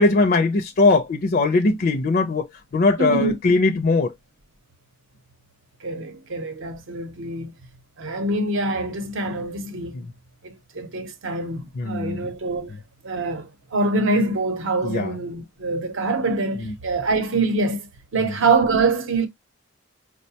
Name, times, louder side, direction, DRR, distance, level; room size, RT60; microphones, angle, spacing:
voice 1, 0.0-2.5 2.7-4.1 9.9-10.1 11.8-12.2 14.8-15.1 16.6-16.7, left 3 dB, 45° left, 0.4 m, -20 dB
voice 2, 3.0-3.4 5.8-7.5 8.0-10.0 10.4-12.7 13.0-19.3, right 3 dB, 65° right, 0.7 m, -24 dB
4.7 x 2.1 x 2.7 m
head